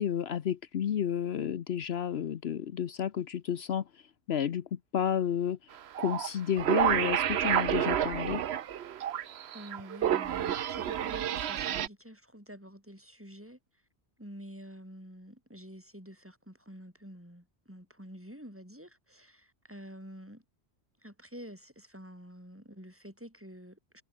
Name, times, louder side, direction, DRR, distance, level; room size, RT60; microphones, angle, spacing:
voice 1, 0.0-3.8 4.3-5.6 6.0-8.4, left 9 dB, 70° left, 1.0 m, -31 dB
sound 1, 5.9-6.3 6.6-11.9, right 10 dB, 70° right, 1.0 m, -29 dB
voice 2, 9.5-13.6 14.2-20.4 21.0-24.0, equal, 10° right, 6.7 m, -48 dB
omnidirectional pair, 1.1 m